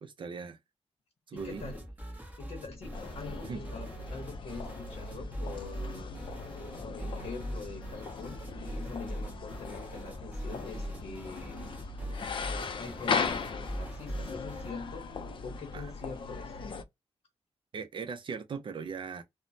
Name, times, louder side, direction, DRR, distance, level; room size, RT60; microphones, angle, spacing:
voice 1, 0.0-0.6 1.3-1.7 3.4-3.6 15.7-15.9 17.7-19.2, right 5 dB, 50° right, 0.4 m, -39 dB
voice 2, 1.3-1.8 2.4-6.1 6.8-11.6 12.5-15.1 15.4-16.6, left 4 dB, 75° left, 0.7 m, -44 dB
sound 1, 1.4-14.8, equal, 15° right, 0.9 m, -42 dB
sound 2, 2.9-16.8, left 4 dB, 50° left, 0.4 m, -38 dB
3.0 x 2.0 x 2.5 m
wide cardioid pair, 160°, 11 cm